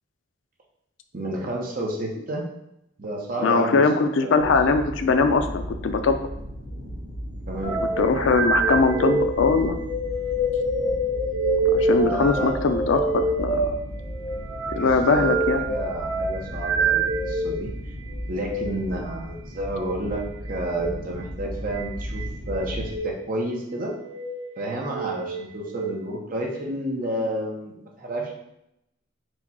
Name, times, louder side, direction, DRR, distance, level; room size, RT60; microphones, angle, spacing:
voice 1, 1.1-2.5 3.0-3.8 4.2-4.5 7.5-7.8 12.0-12.6 14.7-17.7 18.3-20.2 20.5-23.9 24.6-28.3, right 1 dB, 45° right, 0 dB, 0.8 m, -30 dB
voice 2, 3.4-6.2 8.0-9.8 11.7-13.7 14.8-15.6, left 4 dB, 75° left, 8 dB, 0.4 m, -21 dB
sound 1, 4.4-23.0, equal, 55° left, 1.5 m, -35 dB
sound 2, 7.6-17.6 18.3-18.6 20.6-20.9 21.7-22.2 22.8-23.1 23.9-24.4 24.9-25.9, right 2 dB, 70° right, 1.5 m, -26 dB
4.7 x 2.3 x 4.2 m, 0.81 s
head